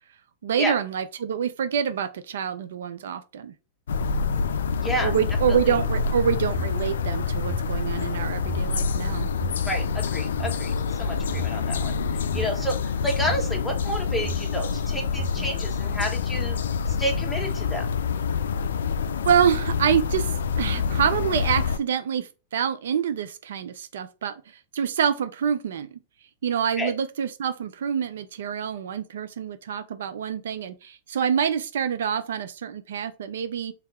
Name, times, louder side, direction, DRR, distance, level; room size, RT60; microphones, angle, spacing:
voice 1, 0.4-3.5 5.0-9.3 19.3-24.4 24.7-25.9 26.4-33.7, right 8 dB, 75° right, 0.4 m, -26 dB
sound 1, 3.9-21.8, left 5 dB, 80° left, 0.3 m, -27 dB
voice 2, 4.8-5.1 5.5-5.7 9.7-12.0 12.3-16.6 17.0-17.9 26.8-26.9, equal, 5° left, 1.2 m, -30 dB
sound 2, 5.7-6.8 7.3-8.6 9.2-10.5 11.2-12.5 13.1-14.5 15.0-15.6, right 4 dB, 25° left, 1.7 m, -37 dB
3.4 x 2.8 x 3.4 m
hypercardioid pair, 115°, 0 cm